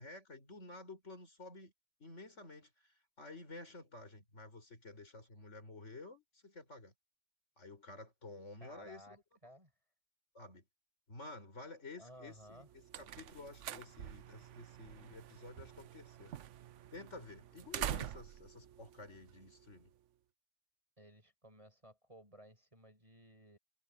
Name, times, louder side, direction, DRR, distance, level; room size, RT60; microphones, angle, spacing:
voice 1, 0.0-1.7 2.0-6.9 7.6-9.2 10.3-10.6 11.1-16.4 16.9-19.9, left 2 dB, 90° left, 5.1 m, -52 dB
voice 2, 8.6-9.2 9.4-9.7 12.0-12.7 21.0-23.6, equal, 30° right, 5.9 m, -57 dB
sound 1, 12.4-19.9, right 11 dB, 90° right, 1.0 m, -46 dB
omnidirectional pair, 1.2 m